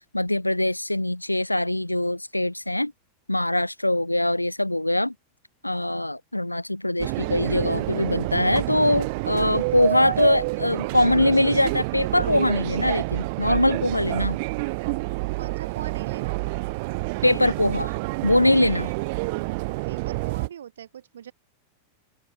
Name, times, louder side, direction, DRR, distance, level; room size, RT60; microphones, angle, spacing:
voice 1, 0.1-2.9 3.3-5.1 5.6-14.4 17.2-17.9 18.2-18.9, left 1 dB, 85° left, 0.5 m, -22 dB
sound 1, 7.0-20.5, right 26 dB, 50° right, 1.0 m, -28 dB
voice 2, 15.4-16.4 19.9-21.3, right 9 dB, 65° right, 2.6 m, -40 dB
open air
figure-of-eight pair, 90°, 0 cm